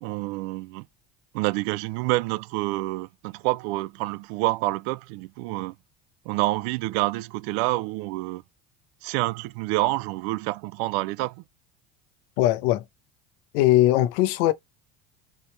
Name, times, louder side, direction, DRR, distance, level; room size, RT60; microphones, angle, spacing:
voice 1, 0.0-0.9 1.3-5.7 6.3-8.4 9.0-11.4, right 20 dB, 65° right, 0.5 m, -27 dB
voice 2, 12.4-12.8 13.5-14.5, left 15 dB, 70° left, 0.8 m, -20 dB
4.2 x 3.6 x 3.3 m
hypercardioid pair, 75°, 33 cm